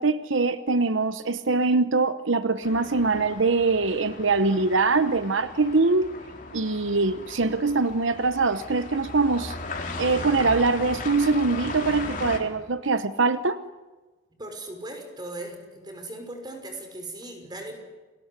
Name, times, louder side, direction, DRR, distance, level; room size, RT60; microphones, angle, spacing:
voice 1, 0.0-6.1 6.5-9.6 10.0-13.6, right 3 dB, 80° right, 12 dB, 1.0 m, -23 dB
sound 1, 2.6-12.4, left 3 dB, 45° left, 4.1 m, -37 dB
voice 2, 14.4-17.8, right 1 dB, 20° right, 5 dB, 6.0 m, -38 dB
29.5 x 20.0 x 9.7 m, 1.2 s
head